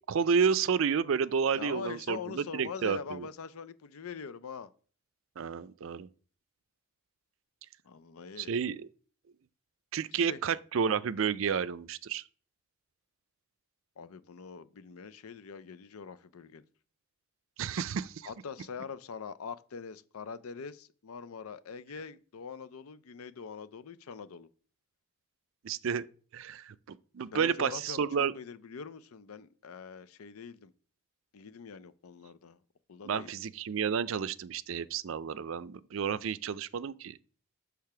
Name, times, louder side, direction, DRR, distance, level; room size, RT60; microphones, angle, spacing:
voice 1, 0.1-3.3 5.4-6.1 8.4-8.9 9.9-12.2 17.6-18.3 25.6-26.0 26.3-28.3 33.0-37.2, right 6 dB, 65° right, 0.4 m, -31 dB
voice 2, 1.6-4.7 7.8-8.5 10.1-10.4 14.0-16.6 18.2-24.5 27.3-30.7 31.3-32.6 32.9-33.3, left 5 dB, 85° left, 0.5 m, -43 dB
6.6 x 3.4 x 5.7 m
head